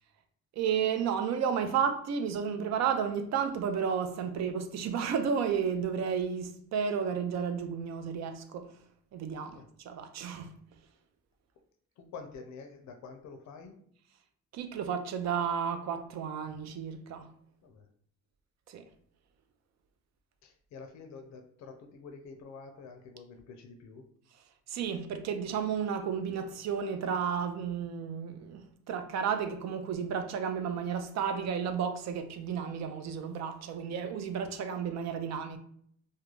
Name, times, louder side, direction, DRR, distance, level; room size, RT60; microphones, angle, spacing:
voice 1, 0.5-8.7 9.1-10.6 14.5-17.3 18.7-18.9 24.7-35.6, right 7 dB, 65° right, 0.4 m, -32 dB
voice 2, 12.0-13.8 17.6-17.9 20.4-24.1, left 4 dB, 65° left, 0.5 m, -48 dB
2.4 x 2.2 x 3.0 m
cardioid pair, 90°, 30 cm